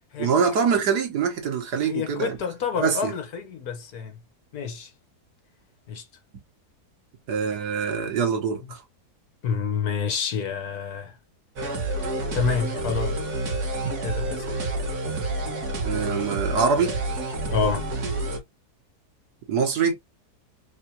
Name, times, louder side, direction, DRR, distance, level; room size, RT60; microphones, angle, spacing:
voice 1, 0.2-2.4 2.8-3.1 7.3-8.8 15.9-17.0 19.5-20.0, right 6 dB, 85° right, 1.9 m, -24 dB
voice 2, 1.8-4.2 4.5-4.9 5.9-6.1 9.4-11.2 12.3-13.2 14.0-14.4 17.5-17.9, left 6 dB, 70° left, 1.6 m, -28 dB
sound 1, 11.6-18.4, right 2 dB, 70° right, 2.1 m, -28 dB
4.2 x 3.6 x 2.9 m
omnidirectional pair, 1.7 m